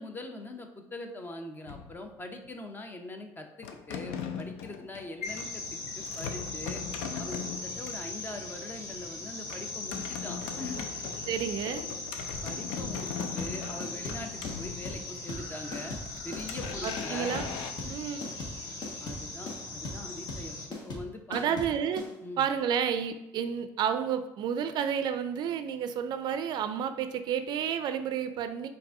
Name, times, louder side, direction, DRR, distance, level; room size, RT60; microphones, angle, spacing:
voice 1, 0.0-5.6 6.0-6.8 7.2-10.9 12.4-16.0 16.2-17.3 17.8-18.0 19.0-21.8 22.2-22.4, left 2 dB, 25° left, 5 dB, 0.7 m, -42 dB
sound 1, 1.7-2.5 3.6-8.1 9.5-15.3 15.7-17.7, left 7 dB, 75° left, 0.4 m, -40 dB
sound 2, 5.2-20.7, left 2 dB, 40° left, 1.4 m, -40 dB
voice 2, 11.3-11.8 16.8-17.5 17.9-18.3 21.3-22.0 22.4-28.7, right 8 dB, 60° right, 10 dB, 0.4 m, -30 dB
sound 3, 12.3-22.1, left 2 dB, 55° left, 1.3 m, -40 dB
4.6 x 2.6 x 3.6 m, 0.89 s
supercardioid pair, 80°, 9 cm